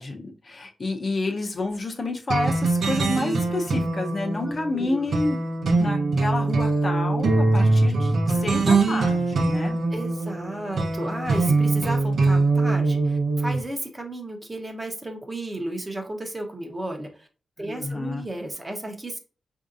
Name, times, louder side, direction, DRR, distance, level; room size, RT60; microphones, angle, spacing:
voice 1, 0.0-5.4 5.8-9.8 17.6-18.2, left 2 dB, 40° left, 2 dB, 0.6 m, -29 dB
sound 1, 2.3-13.6, right 3 dB, 75° right, 0.7 m, -23 dB
voice 2, 4.4-5.1 8.3-8.5 9.9-17.3 17.6-19.2, right 1 dB, 20° right, 3 dB, 0.8 m, -33 dB
4.9 x 2.7 x 2.5 m, 0.36 s
wide cardioid pair, 120°, 0 cm